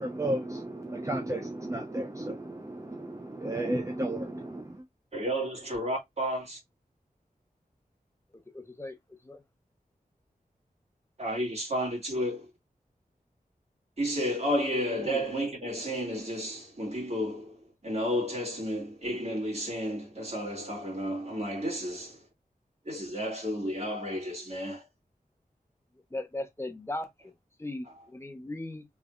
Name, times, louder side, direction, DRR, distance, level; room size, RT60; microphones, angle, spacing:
voice 1, 0.0-4.8, right 1 dB, 20° right, 0.6 m, -33 dB
voice 2, 5.1-6.6 11.2-12.5 14.0-22.2 22.8-24.9 27.9-28.0, equal, 45° right, 2.2 m, -32 dB
voice 3, 8.5-9.0 9.2-9.4 15.0-15.2 26.1-27.3 27.6-28.8, left 2 dB, 15° left, 0.9 m, -38 dB
3.5 x 3.4 x 2.3 m
wide cardioid pair, 80°, 15 cm